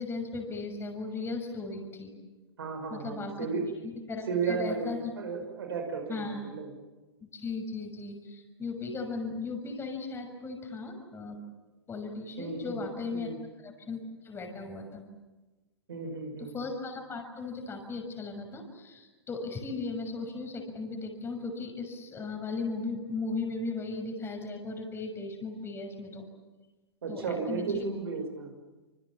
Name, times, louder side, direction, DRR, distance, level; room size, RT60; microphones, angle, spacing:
voice 1, 0.0-2.1 2.9-3.5 3.8-5.1 6.1-6.4 7.3-11.4 11.9-13.3 13.6-15.0 16.4-26.3 27.1-27.2 27.5-27.8, left 3 dB, 15° left, 4 dB, 6.5 m, -37 dB
voice 2, 2.6-3.6 4.3-6.7 12.4-12.8 13.1-13.4 15.9-16.5 27.0-28.5, right 5 dB, 65° right, 4 dB, 6.1 m, -34 dB
28.0 x 27.5 x 7.4 m, 1.2 s
figure-of-eight pair, 105°, 14 cm